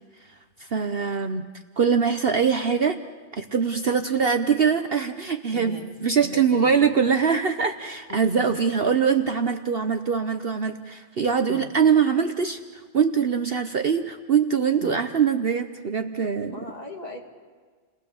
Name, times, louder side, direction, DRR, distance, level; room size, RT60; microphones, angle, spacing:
voice 1, 0.6-1.5 1.8-3.0 3.3-16.5, right 6 dB, 50° right, 7 dB, 1.0 m, -23 dB
voice 2, 5.5-5.9 6.2-7.0 8.1-8.4 11.5-11.7 14.8-15.1 16.5-17.2, left 1 dB, 30° left, 0 dB, 2.7 m, -38 dB
30.0 x 19.0 x 7.1 m, 1.5 s
omnidirectional pair, 1.4 m